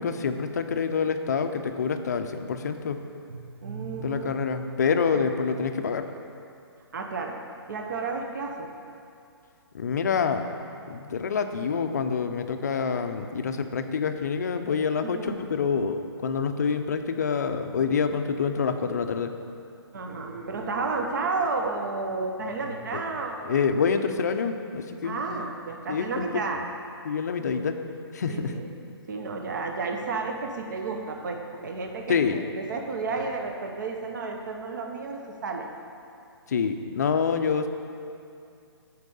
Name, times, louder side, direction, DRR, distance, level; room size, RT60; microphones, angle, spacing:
voice 1, 0.0-3.0 4.0-6.1 9.7-10.5 10.8-19.3 22.9-23.0 23.5-25.2 25.9-26.6 27.0-27.8 28.1-28.6 32.1-32.4 36.5-37.7, left 6 dB, 40° left, 7 dB, 0.4 m, -27 dB
voice 2, 3.3-4.3 5.1-5.2 6.9-7.4 7.7-8.7 15.0-15.4 19.9-23.6 25.0-26.6 28.3-28.7 29.1-35.7, right 4 dB, 45° right, 2 dB, 0.7 m, -32 dB
8.1 x 4.6 x 5.4 m, 2.5 s
hypercardioid pair, 170°, 14 cm